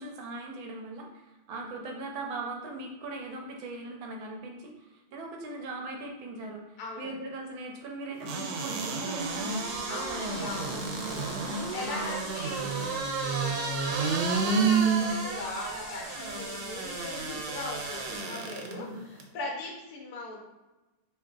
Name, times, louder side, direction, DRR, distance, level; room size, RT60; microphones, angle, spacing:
voice 1, 0.0-10.5 11.8-12.9 18.6-19.0, right 2 dB, 70° right, 1 dB, 1.4 m, -40 dB
voice 2, 6.8-7.1 9.9-13.0 13.3-20.4, left 2 dB, 60° left, -2 dB, 1.2 m, -40 dB
sound 1, 8.2-18.7 19.2-19.3, right 4 dB, 90° right, 1.5 m, -31 dB
sound 2, 9.2-18.2, left 2 dB, 90° left, 0.5 m, -45 dB
5.7 x 3.4 x 2.3 m, 1.1 s
omnidirectional pair, 2.3 m